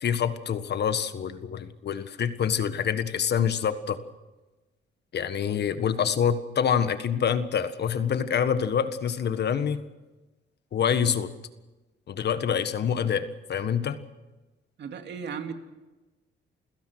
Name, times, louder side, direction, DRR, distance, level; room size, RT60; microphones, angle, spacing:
voice 1, 0.0-4.0 5.1-9.8 10.7-11.3 12.1-14.0, left 8 dB, 55° left, 11 dB, 1.6 m, -26 dB
voice 2, 14.8-15.5, right 6 dB, 60° right, 6 dB, 2.5 m, -35 dB
29.0 x 16.5 x 6.2 m, 1.1 s
cardioid pair, 90°, 20 cm